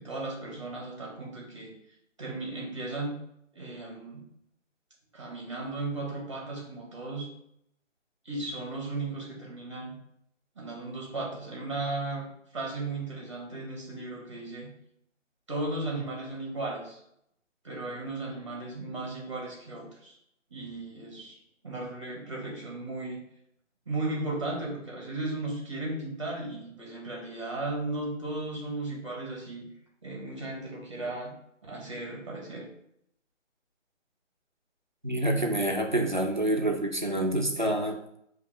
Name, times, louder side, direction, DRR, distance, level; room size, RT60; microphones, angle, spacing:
voice 1, 0.0-1.7 2.2-3.2 3.5-4.2 5.1-7.3 8.2-9.9 10.6-12.2 12.5-14.7 15.5-17.0 17.6-20.2 20.5-21.4 21.6-23.2 23.9-29.6 30.0-31.3 31.6-32.7, right 2 dB, 25° right, -2 dB, 0.8 m, -35 dB
voice 2, 35.0-38.0, right 1 dB, 40° right, 1 dB, 0.4 m, -27 dB
4.3 x 2.8 x 4.0 m, 0.74 s
hypercardioid pair, 180°, 38 cm